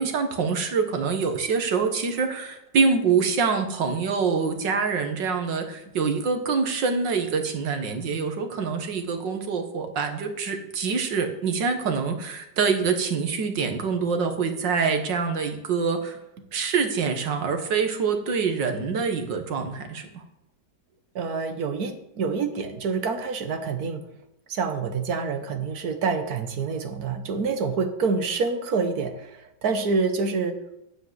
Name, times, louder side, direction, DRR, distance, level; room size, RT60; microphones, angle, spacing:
voice 1, 0.0-16.2 16.5-20.2, right 5 dB, 80° right, 6 dB, 2.1 m, -25 dB
voice 2, 21.1-24.0 24.5-30.6, right 4 dB, 60° right, 8 dB, 1.5 m, -27 dB
9.3 x 7.7 x 7.9 m, 0.84 s
omnidirectional pair, 1.9 m